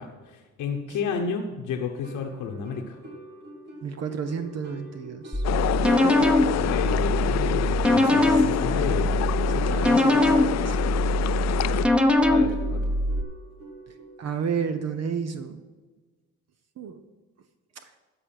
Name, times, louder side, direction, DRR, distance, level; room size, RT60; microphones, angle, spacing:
voice 1, 0.0-3.0 6.1-9.2 12.3-12.9, left 6 dB, 85° left, 2 dB, 1.0 m, -32 dB
sound 1, 2.0-14.9, equal, 85° right, 3.1 m, -45 dB
voice 2, 3.8-5.4 8.2-8.4 9.5-10.8 13.9-15.6 16.8-17.0 17.8-17.9, right 6 dB, 60° right, 8 dB, 0.9 m, -32 dB
sound 2, 5.3-13.2, left 1 dB, 5° right, 0.9 m, -22 dB
sound 3, 5.4-11.9, left 13 dB, 60° left, 0.4 m, -27 dB
13.0 x 4.9 x 7.6 m, 1.3 s
cardioid pair, 90°, 30 cm